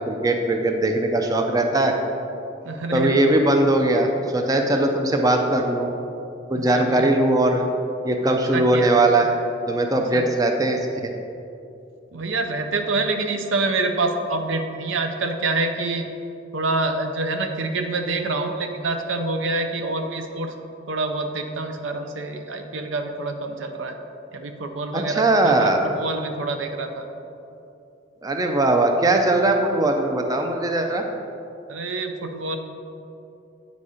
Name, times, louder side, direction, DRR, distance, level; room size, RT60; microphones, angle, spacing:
voice 1, 0.0-2.0 2.9-5.9 6.5-7.6 8.0-9.4 9.7-11.1 24.9-25.9 28.2-31.0, right 2 dB, 20° right, 3 dB, 0.4 m, -20 dB
voice 2, 2.6-3.1 6.5-7.1 8.2-8.9 10.1-10.2 12.1-16.1 16.5-20.5 20.9-23.9 24.3-27.1 31.7-32.6, right 3 dB, 75° right, 6 dB, 0.6 m, -26 dB
8.5 x 4.1 x 4.9 m, 2.8 s
head